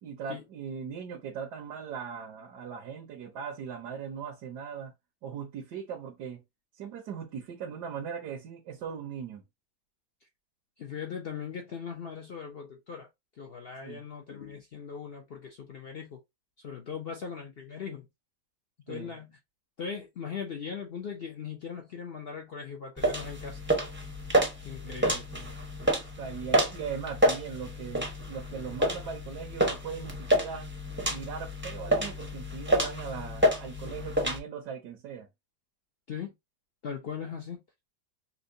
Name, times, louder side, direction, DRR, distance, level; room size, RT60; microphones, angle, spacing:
voice 1, 0.0-4.9 5.2-6.4 6.7-9.4 13.8-14.0 18.9-19.1 24.8-25.5 26.2-30.7 31.1-35.3, right 7 dB, 80° right, 1.4 m, -39 dB
voice 2, 10.8-13.1 13.4-16.2 16.6-18.1 18.9-19.4 19.8-23.6 24.6-25.2 36.1-36.3 36.8-37.6, left 6 dB, 65° left, 0.5 m, -39 dB
sound 1, 23.0-34.4, equal, 15° right, 0.4 m, -29 dB
5.4 x 2.2 x 2.6 m
omnidirectional pair, 1.7 m